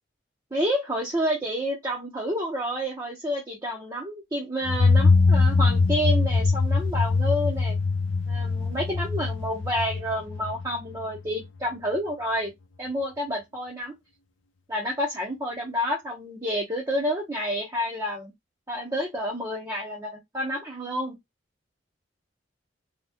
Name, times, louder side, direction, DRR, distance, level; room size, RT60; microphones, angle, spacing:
voice 1, 0.5-7.7 8.3-12.5 12.8-13.9 14.7-18.3 18.7-21.1, equal, 20° right, 0.7 m, -29 dB
sound 1, 4.7-11.2, left 3 dB, 75° left, 0.5 m, -22 dB
2.8 x 2.2 x 3.4 m
head